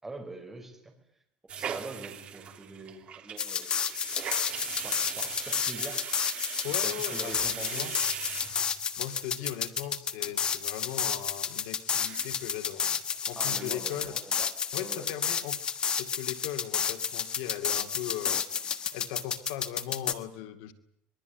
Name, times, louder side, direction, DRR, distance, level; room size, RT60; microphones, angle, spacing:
voice 1, 0.0-0.9 1.5-3.8 4.8-6.0 6.7-7.9 13.4-14.5 14.8-15.1, right 2 dB, 10° right, 3 dB, 5.3 m, -43 dB
sound 1, 1.5-9.1 9.4-9.5 9.8-9.9 10.2-10.5 10.9-11.0 11.5-11.6 11.9-12.5 12.7-12.8 13.1-13.6 14.0-14.1, right 8 dB, 30° right, 3.1 m, -40 dB
sound 2, 3.4-20.1, left 7 dB, 25° left, 1.4 m, -31 dB
voice 2, 6.6-7.9 9.0-14.2 14.7-15.6 16.0-18.4 18.9-20.7, left 12 dB, 80° left, 8 dB, 2.3 m, -38 dB
25.0 x 22.0 x 9.3 m, 0.72 s
cardioid pair, 175°, 4 cm